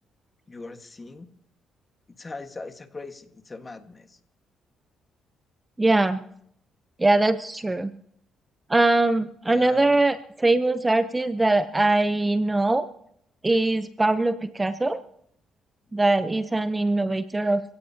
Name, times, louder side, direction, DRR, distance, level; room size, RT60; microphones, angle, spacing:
voice 1, 0.5-1.3 2.2-4.2 9.5-10.0, left 3 dB, 25° left, 7 dB, 1.6 m, -40 dB
voice 2, 5.8-6.2 7.0-7.9 8.7-12.9 13.4-15.0 15.9-17.6, right 2 dB, 15° right, 11 dB, 0.7 m, -22 dB
27.0 x 17.0 x 2.9 m, 0.69 s
cardioid pair, 90°, 0 cm